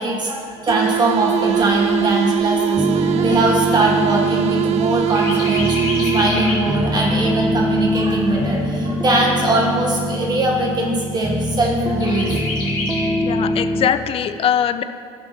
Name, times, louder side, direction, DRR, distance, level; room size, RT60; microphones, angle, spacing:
voice 1, 0.0-12.4, right 2 dB, 30° right, -2 dB, 1.8 m, -21 dB
sound 1, 0.7-6.6, right 10 dB, 55° right, 0.4 m, -21 dB
Chirp tweet, 1.0-4.7 5.1-6.7 7.2-7.3 7.6-8.6 9.2-9.3 9.7-9.8 10.2-10.7 12.0-13.1, left 2 dB, 80° left, 2.1 m, -30 dB
sound 2, 2.8-13.9, left 1 dB, 5° right, 0.6 m, -23 dB
voice 2, 13.2-14.8, left 9 dB, 45° left, 12 dB, 0.5 m, -21 dB
11.0 x 6.6 x 3.0 m, 2.3 s
supercardioid pair, 80°, 13 cm